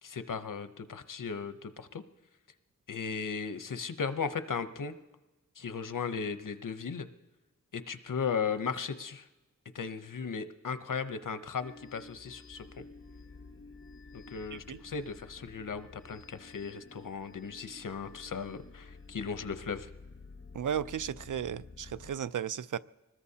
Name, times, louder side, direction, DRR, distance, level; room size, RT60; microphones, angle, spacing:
voice 1, 0.0-2.0 2.9-4.9 5.6-7.1 7.7-9.3 9.7-12.9 14.1-19.9, left 5 dB, 90° left, 0.8 m, -36 dB
sound 1, 11.6-22.2, left 3 dB, 40° left, 1.1 m, -51 dB
voice 2, 14.5-14.8 20.5-22.8, right 9 dB, 75° right, 0.5 m, -35 dB
25.0 x 20.0 x 2.8 m
wide cardioid pair, 60°, 31 cm